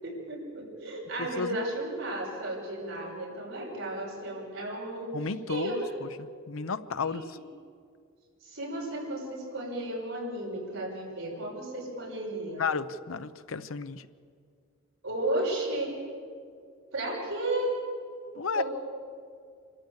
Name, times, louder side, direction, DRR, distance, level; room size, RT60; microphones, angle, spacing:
voice 1, 0.0-5.1 5.5-5.8 7.0-7.2 8.4-12.6 15.0-15.9 16.9-17.8 18.5-18.6, right 1 dB, 75° right, -3 dB, 6.4 m, -33 dB
voice 2, 1.2-1.7 5.1-6.1 6.5-7.4 12.6-14.1 18.4-18.6, left 5 dB, 90° left, 12 dB, 0.7 m, -33 dB
27.0 x 13.5 x 8.1 m, 2.2 s
head